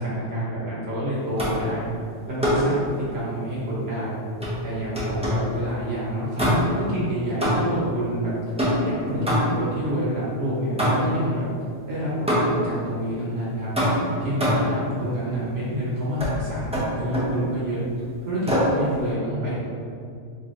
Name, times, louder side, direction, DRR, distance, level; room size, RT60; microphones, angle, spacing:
voice 1, 0.0-1.8 2.3-2.8 3.1-4.2 4.6-8.3 8.8-11.4 11.9-13.7 14.2-17.8 18.2-19.7, equal, 70° right, -7 dB, 1.4 m, -28 dB
sound 1, 1.4-1.7 2.4-2.8 4.4-5.5 6.4-6.9 7.4-7.9 8.6-9.7 10.8-11.3 12.3-12.7 13.8-14.8 16.2-16.4 16.7-17.4 18.5-18.8, equal, 5° right, 0.5 m, -23 dB
2.9 x 2.9 x 3.7 m, 2.3 s
omnidirectional pair, 1.2 m